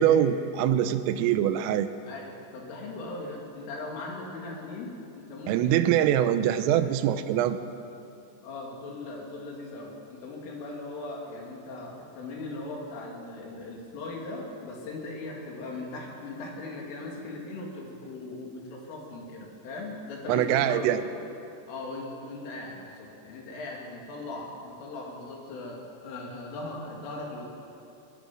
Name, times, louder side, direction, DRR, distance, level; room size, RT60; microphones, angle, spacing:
voice 1, 0.0-1.9 5.5-7.6 20.3-21.0, right 10 dB, 85° right, 11 dB, 3.4 m, -23 dB
voice 2, 2.5-6.2 8.4-21.0 21.7-27.5, left 2 dB, 75° left, -1 dB, 5.4 m, -39 dB
20.5 x 20.5 x 6.2 m, 2.7 s
omnidirectional pair, 5.9 m